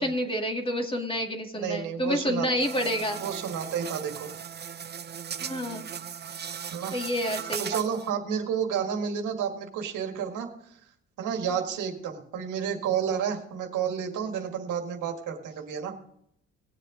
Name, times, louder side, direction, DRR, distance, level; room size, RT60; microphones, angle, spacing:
voice 1, 0.0-3.2 5.4-5.9 6.9-7.7, equal, 15° left, 3 dB, 2.1 m, -29 dB
voice 2, 1.5-2.5 3.2-4.3 6.7-7.0 7.6-10.8 11.2-15.9, right 7 dB, 85° right, 4 dB, 1.9 m, -31 dB
sound 1, 2.6-8.1, right 7 dB, 35° right, 0.7 m, -37 dB
19.5 x 7.6 x 3.8 m, 0.71 s
cardioid pair, 90°, 30 cm